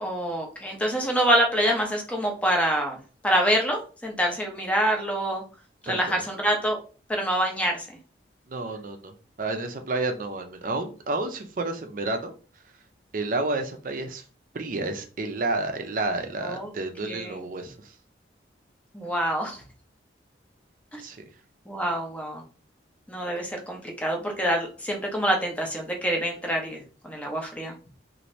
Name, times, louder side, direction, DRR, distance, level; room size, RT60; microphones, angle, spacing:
voice 1, 0.0-3.0 3.2-5.4 5.8-6.8 7.1-7.9 16.4-16.7 17.0-17.4 18.9-19.6 20.9-21.0 21.7-22.4 23.1-27.7, right 1 dB, 5° left, 1 dB, 0.6 m, -26 dB
voice 2, 5.9-6.2 8.5-12.3 13.1-14.2 14.5-17.9 21.0-21.2, right 2 dB, 45° right, 6 dB, 0.5 m, -30 dB
2.7 x 2.6 x 3.1 m, 0.37 s
head